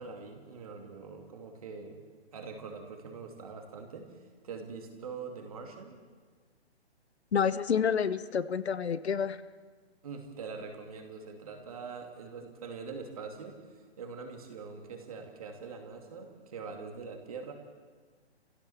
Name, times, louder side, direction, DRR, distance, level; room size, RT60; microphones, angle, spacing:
voice 1, 0.0-2.0 2.3-6.0 10.0-17.5, right 5 dB, 35° right, 3 dB, 2.6 m, -43 dB
voice 2, 7.3-9.4, left 7 dB, 70° left, 14 dB, 1.0 m, -28 dB
28.5 x 16.0 x 7.2 m, 1.5 s
hypercardioid pair, 175°, 33 cm